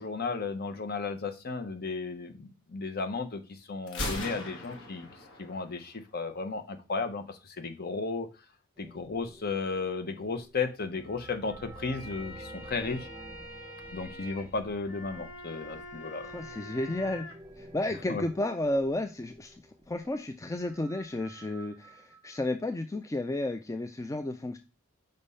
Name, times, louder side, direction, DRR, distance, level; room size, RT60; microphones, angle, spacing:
voice 1, 0.0-5.1 5.4-8.3 8.8-13.1 13.9-16.3 18.1-18.2, left 4 dB, 45° left, 8 dB, 0.9 m, -34 dB
Gunshot gunfire, 3.9-5.8, left 1 dB, 60° left, 1.4 m, -37 dB
sound 1, 8.8-22.4, right 2 dB, 15° right, 0.8 m, -51 dB
sound 2, 11.8-17.3, left 1 dB, 85° left, 3.4 m, -45 dB
voice 2, 16.3-17.3 17.6-19.6 19.9-24.6, left 1 dB, 15° left, 6 dB, 0.4 m, -32 dB
5.3 x 3.5 x 5.4 m, 0.29 s
head